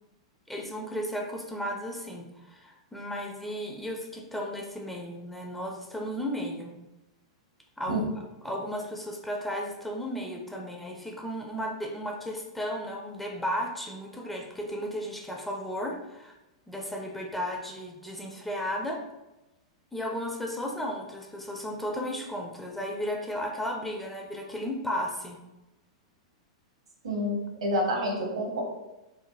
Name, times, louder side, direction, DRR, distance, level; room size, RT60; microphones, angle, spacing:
voice 1, 0.5-6.7 7.8-8.1 8.4-16.3 16.7-19.0 19.9-25.4, equal, 5° left, 0 dB, 0.4 m, -34 dB
voice 2, 27.0-28.6, equal, 75° right, -2 dB, 0.9 m, -28 dB
3.2 x 2.1 x 2.4 m, 0.96 s
figure-of-eight pair, 100°, 3 cm